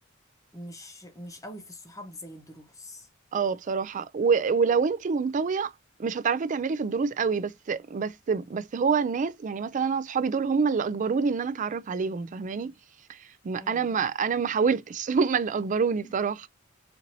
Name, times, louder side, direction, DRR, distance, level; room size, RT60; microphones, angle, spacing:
voice 1, 0.5-3.1 13.5-14.0 16.0-16.1, left 1 dB, 15° left, 0.9 m, -44 dB
voice 2, 3.3-5.7 6.0-12.7 13.1-13.2 13.4-16.5, right 5 dB, 40° right, 0.4 m, -26 dB
4.5 x 2.6 x 2.7 m
head